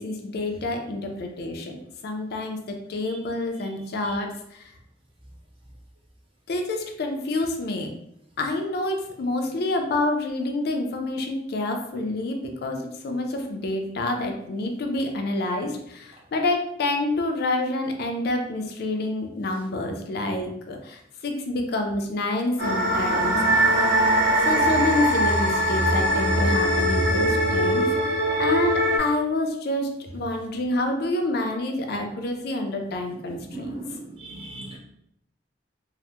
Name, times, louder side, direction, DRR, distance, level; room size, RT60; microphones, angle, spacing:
voice 1, 0.0-1.8 2.0-4.7 6.5-7.9 8.4-23.8 24.4-33.7, left 2 dB, 60° left, 4 dB, 0.4 m, -28 dB
sound 1, 22.6-29.0, equal, 85° right, 0.6 m, -21 dB
voice 2, 33.5-34.8, right 2 dB, 30° right, -2 dB, 0.7 m, -37 dB
3.2 x 2.0 x 2.8 m, 0.75 s
head